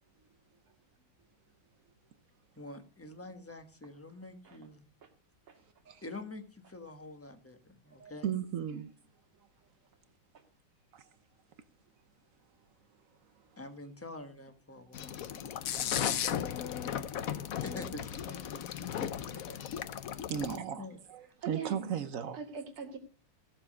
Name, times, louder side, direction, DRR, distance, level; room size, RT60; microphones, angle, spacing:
voice 1, 2.6-4.8 6.0-8.4 13.6-15.9 17.6-20.0 20.4-21.0, left 2 dB, 10° left, 1.0 m, -47 dB
voice 2, 8.0-8.9 10.9-11.0 20.3-22.4, right 8 dB, 60° right, 0.9 m, -36 dB
sound 1, 14.9-20.6, left 9 dB, 65° left, 0.9 m, -36 dB
voice 3, 21.4-21.9 22.3-23.0, right 6 dB, 75° right, 3.1 m, -42 dB
17.0 x 7.2 x 5.2 m
omnidirectional pair, 2.3 m